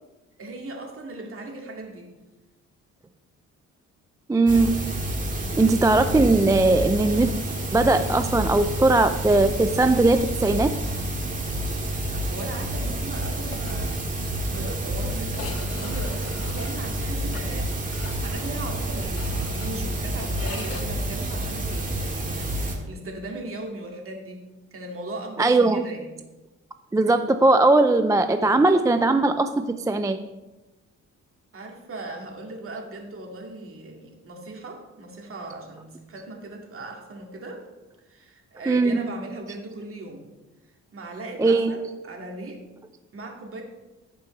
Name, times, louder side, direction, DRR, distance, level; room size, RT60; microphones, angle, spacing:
voice 1, 0.4-2.1 11.9-14.0 14.5-17.7 18.0-26.2 31.5-37.6 38.1-40.3 40.9-42.6 43.1-43.6, right 2 dB, 45° right, 1 dB, 2.2 m, -38 dB
voice 2, 4.3-4.9 5.6-7.4 7.7-10.8 25.4-25.8 26.9-30.2 38.7-39.0 41.4-41.7, right 2 dB, 10° right, 8 dB, 0.4 m, -19 dB
sound 1, 4.5-22.8, right 1 dB, 25° right, 1.8 m, -29 dB
sound 2, 13.2-13.8 14.1-14.2 14.4-14.5 15.3-20.8, left 5 dB, 50° left, 1.2 m, -42 dB
16.0 x 5.4 x 3.2 m, 1.1 s
cardioid pair, 90°, 30 cm